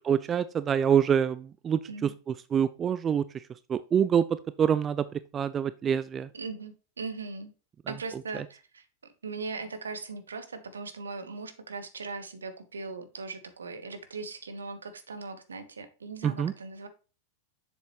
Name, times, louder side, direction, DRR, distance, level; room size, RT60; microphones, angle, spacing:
voice 1, 0.1-2.1 2.5-3.4 3.7-4.3 4.6-5.1 5.3-6.3 16.2-16.5, right 8 dB, 25° right, 15 dB, 0.3 m, -25 dB
voice 2, 6.3-7.5 7.9-8.8 9.2-16.9, right 4 dB, 70° right, 9 dB, 1.1 m, -39 dB
7.2 x 6.9 x 3.1 m, 0.34 s
figure-of-eight pair, 90°, 0 cm